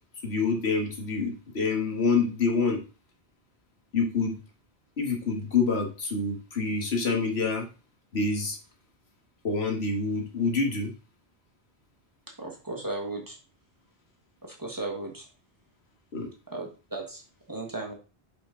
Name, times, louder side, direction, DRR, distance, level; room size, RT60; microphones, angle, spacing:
voice 1, 0.2-2.8 3.9-4.4 5.0-7.6 8.1-8.6 9.4-10.9 16.1-16.3, left 4 dB, 75° left, 2 dB, 1.8 m, -27 dB
voice 2, 12.4-13.4 14.4-15.3 16.5-17.2 17.5-17.9, right 2 dB, 20° right, 0 dB, 1.4 m, -35 dB
5.3 x 5.1 x 3.8 m, 0.33 s
omnidirectional pair, 1.1 m